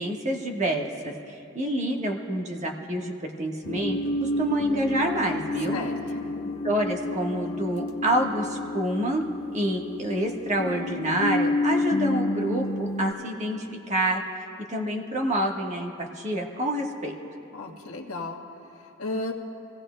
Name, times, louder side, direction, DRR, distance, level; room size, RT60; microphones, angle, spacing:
voice 1, 0.0-5.8 6.6-9.3 9.5-14.2 14.7-17.2, right 1 dB, 35° right, 1 dB, 1.3 m, -28 dB
sound 1, 3.6-13.1, left 2 dB, 65° left, 0.7 m, -30 dB
voice 2, 5.7-6.3 17.5-19.3, left 2 dB, 85° left, 1 dB, 1.4 m, -35 dB
27.0 x 16.5 x 2.2 m, 2.8 s
head